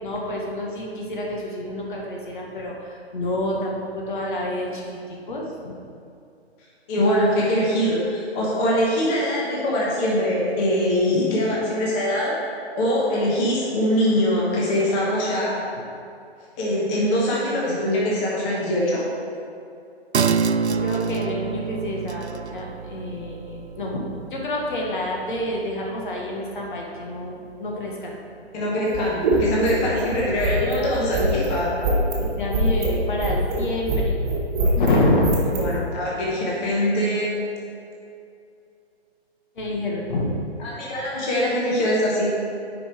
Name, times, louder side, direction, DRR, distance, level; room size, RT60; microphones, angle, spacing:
voice 1, 0.0-5.8 7.2-7.5 15.7-15.8 20.7-28.1 29.9-30.0 30.6-31.5 32.2-34.2 34.7-35.3 39.5-40.4, left 1 dB, 50° left, -1 dB, 1.4 m, -28 dB
voice 2, 6.9-12.4 12.7-15.6 16.6-19.0 28.5-31.7 35.5-37.3 40.6-42.3, equal, 20° left, -5 dB, 1.3 m, -23 dB
sound 1, 20.1-27.2 27.5-27.6, right 5 dB, 90° right, 0.5 m, -28 dB
sound 2, 28.9-35.7, right 2 dB, 25° right, 1.7 m, -24 dB
9.5 x 5.5 x 4.5 m, 2.5 s
figure-of-eight pair, 135°, 32 cm